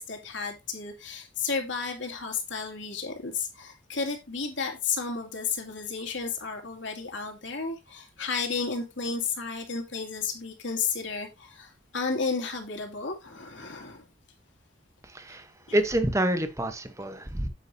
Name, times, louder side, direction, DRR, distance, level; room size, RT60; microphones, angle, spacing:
voice 1, 0.0-14.0 15.3-15.4, left 5 dB, 65° left, 2.5 m, -32 dB
voice 2, 15.0-17.5, right 1 dB, 15° right, 1.0 m, -28 dB
8.8 x 8.2 x 2.7 m
head